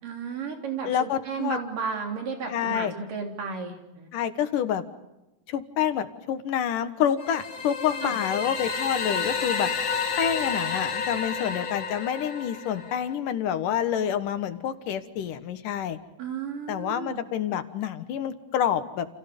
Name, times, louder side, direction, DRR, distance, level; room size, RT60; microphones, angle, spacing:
voice 1, 0.0-4.1 8.0-8.1 16.2-17.2, right 5 dB, 75° right, 2 dB, 5.2 m, -33 dB
voice 2, 0.8-1.6 2.5-2.9 4.1-4.8 5.5-9.7 10.2-16.0 16.7-19.1, left 9 dB, 80° left, 10 dB, 2.9 m, -28 dB
sound 1, 7.2-13.1, left 5 dB, 50° left, 3.5 m, -30 dB
30.0 x 29.0 x 5.4 m, 0.98 s
omnidirectional pair, 3.8 m